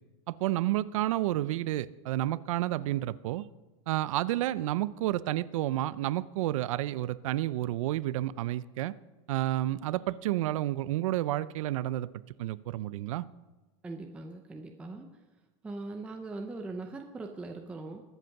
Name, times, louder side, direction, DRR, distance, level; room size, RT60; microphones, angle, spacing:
voice 1, 0.3-3.5 3.9-9.0 9.3-12.1 12.4-13.2, right 14 dB, 80° right, 18 dB, 0.6 m, -30 dB
voice 2, 13.8-15.1 15.6-18.0, right 3 dB, 5° right, 3 dB, 0.6 m, -40 dB
21.0 x 8.2 x 5.9 m, 1.2 s
supercardioid pair, 175°, 17 cm